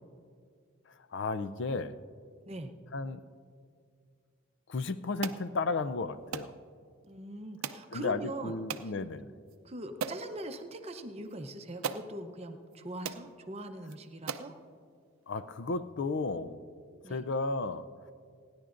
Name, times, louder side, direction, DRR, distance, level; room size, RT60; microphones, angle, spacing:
voice 1, 1.1-2.0 2.9-3.2 4.7-6.5 7.9-9.3 15.3-16.6 17.1-17.9, left 3 dB, 55° left, 13 dB, 0.5 m, -33 dB
sound 1, 5.2-5.4 6.3-6.5 7.6-7.9 8.7-8.9 9.5-9.6 10.0-10.3 11.3-11.4 11.8-12.1 12.7-12.8 13.0-13.3 13.9-14.0 14.3-14.5, right 6 dB, 80° right, 0.5 m, -37 dB
voice 2, 7.0-8.5 9.6-14.5 17.0-17.2, right 1 dB, 30° right, 6 dB, 0.7 m, -42 dB
29.5 x 10.5 x 2.5 m, 2.2 s
head